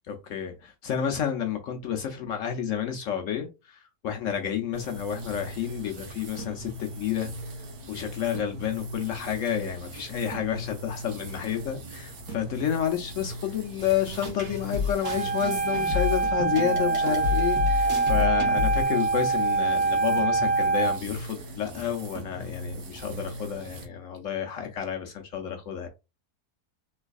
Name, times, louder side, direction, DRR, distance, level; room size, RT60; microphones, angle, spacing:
voice 1, 0.1-7.3 7.9-25.9, left 9 dB, 70° left, 0.8 m, -30 dB
sound 1, 4.7-23.9, right 1 dB, 85° right, 1.4 m, -40 dB
sound 2, 13.8-18.8, left 7 dB, 60° right, 1.4 m, -31 dB
Wind instrument woodwind instrument, 15.0-21.0, right 4 dB, 20° left, 0.5 m, -25 dB
3.2 x 3.2 x 2.3 m
omnidirectional pair, 1.6 m